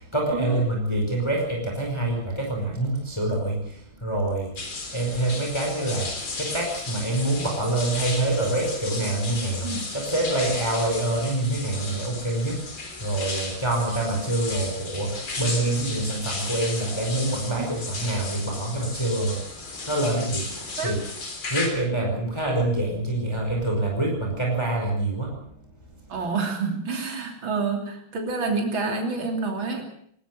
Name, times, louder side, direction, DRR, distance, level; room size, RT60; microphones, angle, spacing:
voice 1, 0.0-19.5 19.8-21.0 21.5-25.3, right 2 dB, 10° left, -1 dB, 5.1 m, -26 dB
sound 1, 4.6-21.7, left 3 dB, 90° left, 4.8 m, -34 dB
voice 2, 26.1-29.9, right 4 dB, 70° right, 3 dB, 3.9 m, -28 dB
20.0 x 19.5 x 7.8 m, 0.65 s
omnidirectional pair, 2.2 m